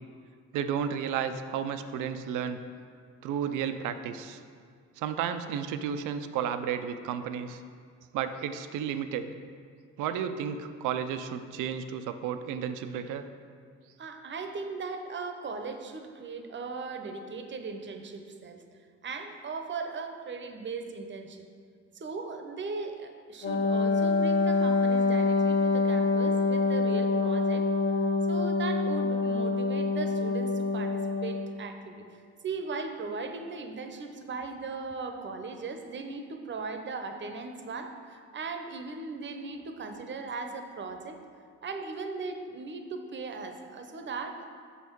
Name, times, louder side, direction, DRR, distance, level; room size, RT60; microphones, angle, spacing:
voice 1, 0.5-2.6 3.2-4.4 5.0-7.6 8.1-9.3 10.0-13.3, right 8 dB, 90° right, 10 dB, 0.5 m, -32 dB
voice 2, 14.0-18.6 19.0-21.5 21.9-27.7 28.3-41.2 41.6-44.4, right 4 dB, 40° right, 6 dB, 0.7 m, -38 dB
Wind instrument woodwind instrument, 23.4-31.5, left 3 dB, 45° left, 1.2 m, -26 dB
6.0 x 5.7 x 4.5 m, 2.1 s
cardioid pair, 90°, 30 cm